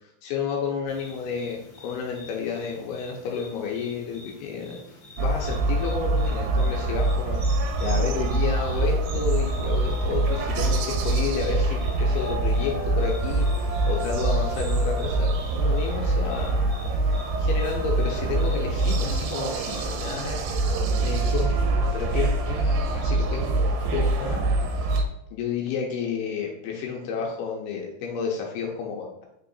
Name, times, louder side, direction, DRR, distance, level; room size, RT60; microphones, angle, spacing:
voice 1, 0.2-16.7 17.4-24.4 24.7-24.9 25.3-29.3, left 6 dB, 80° left, 0 dB, 2.7 m, -31 dB
sound 1, 0.9-20.1, left 3 dB, 35° left, 1.4 m, -48 dB
sound 2, 5.2-25.0, right 2 dB, 80° right, 2.2 m, -24 dB
sound 3, 8.0-14.9, left 3 dB, 30° right, 1.3 m, -43 dB
6.2 x 3.7 x 4.2 m, 0.81 s
omnidirectional pair, 4.8 m